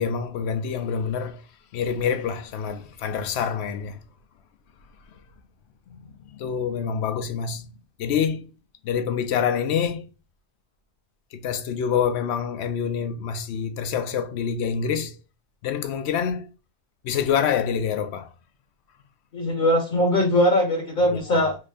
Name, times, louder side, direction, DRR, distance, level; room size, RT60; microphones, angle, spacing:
voice 1, 0.0-1.4 1.7-4.0 5.9-7.7 8.0-8.5 8.8-10.1 11.3-15.2 15.6-16.5 17.0-18.3 21.1-21.5, left 7 dB, 90° left, 0.8 m, -26 dB
voice 2, 19.3-21.6, left 1 dB, 55° left, 0.9 m, -21 dB
3.2 x 2.6 x 3.3 m
omnidirectional pair, 1.1 m